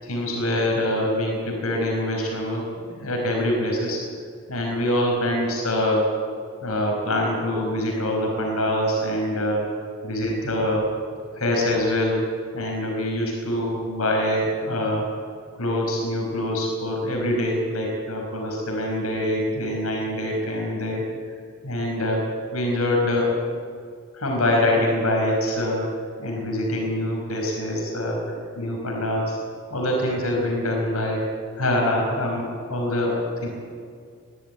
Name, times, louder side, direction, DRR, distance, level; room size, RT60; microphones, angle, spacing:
voice 1, 0.0-4.0 4.5-6.0 6.6-9.7 10.0-10.9 11.4-12.2 12.5-15.1 15.6-21.0 21.6-23.3 24.1-25.9 26.2-29.4 29.7-31.3 31.6-33.5, left 1 dB, 85° left, 0 dB, 5.2 m, -24 dB
21.0 x 14.0 x 9.3 m, 2.1 s
head